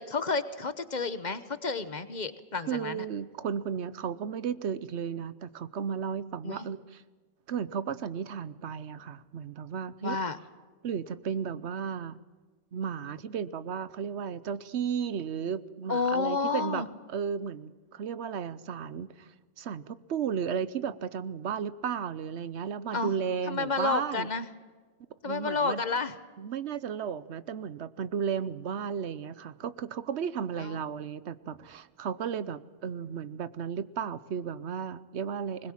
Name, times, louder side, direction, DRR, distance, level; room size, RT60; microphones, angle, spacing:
voice 1, 0.0-3.0 6.4-6.6 10.0-10.4 15.9-16.9 22.9-23.1 23.5-24.5 25.2-26.2 30.6-30.8, left 4 dB, 45° left, 12 dB, 1.1 m, -30 dB
voice 2, 2.7-7.0 7.5-10.2 10.8-12.2 12.7-16.8 17.1-19.3 19.6-24.3 25.2-25.8 26.4-35.7, right 7 dB, 85° right, 15 dB, 1.1 m, -34 dB
21.0 x 20.5 x 7.4 m, 1.4 s
omnidirectional pair, 1.1 m